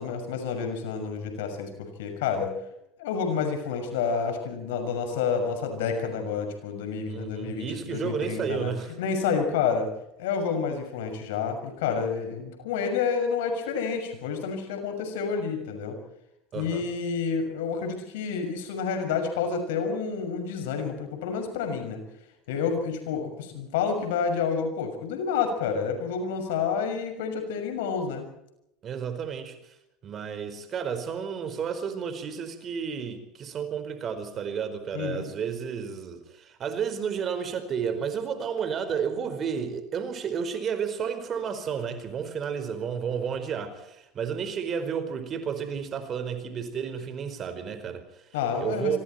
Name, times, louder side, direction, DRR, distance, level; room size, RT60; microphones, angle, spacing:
voice 1, 0.0-2.5 3.0-8.7 9.0-9.9 10.2-16.0 16.5-22.0 22.5-28.2 34.9-35.3 48.3-49.0, left 6 dB, 70° left, 6.4 m, -29 dB
voice 2, 7.1-9.0 16.5-16.8 28.8-29.6 30.0-48.2 48.6-49.0, right 7 dB, 40° right, 4.9 m, -32 dB
26.5 x 25.0 x 4.5 m
hypercardioid pair, 80°, 0 cm